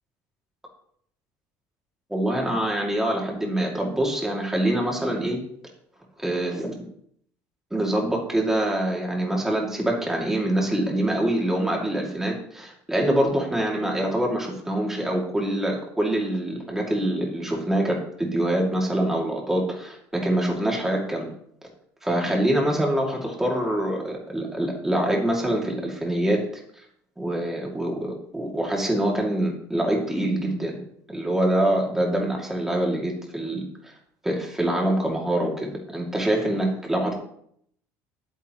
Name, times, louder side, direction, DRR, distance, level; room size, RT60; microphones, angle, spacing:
voice 1, 2.1-5.4 6.2-6.8 7.7-21.3 22.0-26.4 27.2-30.8 31.1-33.9 34.2-37.1, right 1 dB, 5° right, -1 dB, 2.4 m, -25 dB
11.0 x 9.2 x 3.1 m, 0.67 s
cardioid pair, 145°, 7 cm